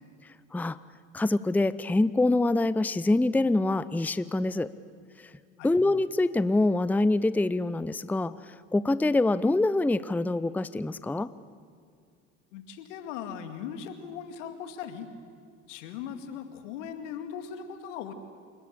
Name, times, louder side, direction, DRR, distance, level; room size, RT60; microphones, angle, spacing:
voice 1, 1.1-4.7 5.2-5.3 5.6-11.3, left 2 dB, 5° left, 16 dB, 0.6 m, -25 dB
voice 2, 12.5-15.1 15.7-18.1, left 8 dB, 80° left, 8 dB, 2.3 m, -39 dB
28.5 x 18.5 x 8.1 m, 2.2 s
hypercardioid pair, 75°, 36 cm